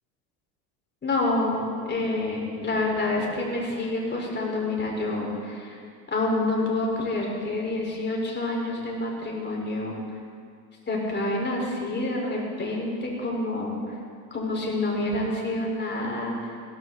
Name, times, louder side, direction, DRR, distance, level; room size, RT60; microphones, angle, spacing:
voice 1, 1.0-5.8 6.1-9.9 10.9-13.8 14.3-16.6, left 2 dB, 20° left, -2 dB, 4.7 m, -28 dB
16.5 x 14.5 x 4.1 m, 2.2 s
hypercardioid pair, 90°, 49 cm